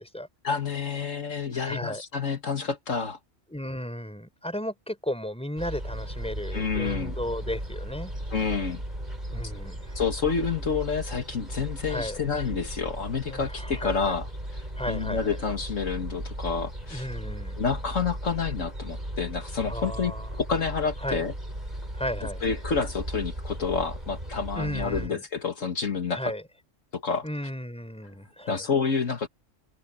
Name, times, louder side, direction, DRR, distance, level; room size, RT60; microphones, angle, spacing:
voice 1, 0.4-3.2 6.5-7.2 8.3-8.8 10.0-14.3 14.5-14.6 14.9-17.1 17.6-21.3 22.4-26.2 26.9-27.3 28.5-29.3, left 5 dB, 75° left, 2.0 m, -29 dB
voice 2, 1.5-2.0 3.5-8.1 9.3-10.0 11.9-12.2 13.3-14.1 14.8-15.4 16.9-17.6 19.7-20.3 21.0-21.2 21.9-22.5 24.6-25.2 26.1-26.4 27.2-28.6, equal, 5° left, 4.2 m, -34 dB
sound 1, 5.6-25.1, right 1 dB, 35° right, 7.9 m, -36 dB
open air
omnidirectional pair, 1.3 m